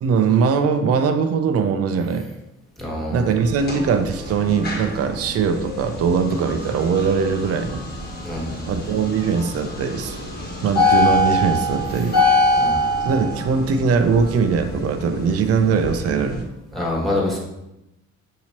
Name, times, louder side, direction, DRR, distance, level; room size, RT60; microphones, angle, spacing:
voice 1, 0.0-2.3 3.1-7.8 8.7-10.2 10.6-12.2 13.0-16.5, right 5 dB, 50° right, 7 dB, 0.5 m, -21 dB
voice 2, 2.8-3.3 8.2-8.6 12.6-12.8 16.7-17.4, left 1 dB, ahead, -4 dB, 1.4 m, -26 dB
sound 1, 3.3-16.4, left 2 dB, 30° left, 1.3 m, -25 dB
5.5 x 2.9 x 2.9 m, 0.91 s
cardioid pair, 90°, 30 cm